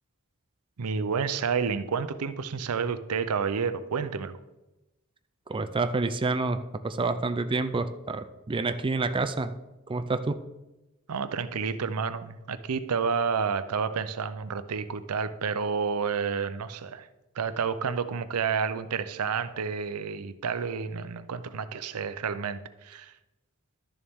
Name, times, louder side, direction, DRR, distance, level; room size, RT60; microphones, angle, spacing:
voice 1, 0.8-4.4 11.1-17.1 17.4-23.1, right 6 dB, 90° right, 13 dB, 0.6 m, -30 dB
voice 2, 5.5-9.5 9.9-10.3, right 3 dB, 25° right, 9 dB, 0.4 m, -28 dB
12.0 x 7.1 x 3.6 m, 1.0 s
head